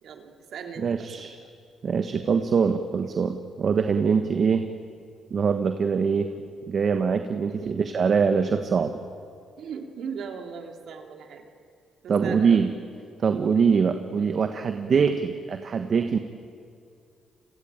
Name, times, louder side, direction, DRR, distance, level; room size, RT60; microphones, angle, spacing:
voice 1, 0.0-1.3 6.1-6.2 7.5-7.9 9.6-11.4 12.0-12.6 14.9-15.1, right 6 dB, 70° right, 4 dB, 3.0 m, -39 dB
voice 2, 0.8-1.3 1.8-4.7 5.3-6.3 6.7-9.0 12.1-12.7 13.2-16.2, right 6 dB, 50° right, 7 dB, 1.4 m, -23 dB
28.5 x 21.5 x 9.0 m, 2.4 s
cardioid pair, 90°, 0 cm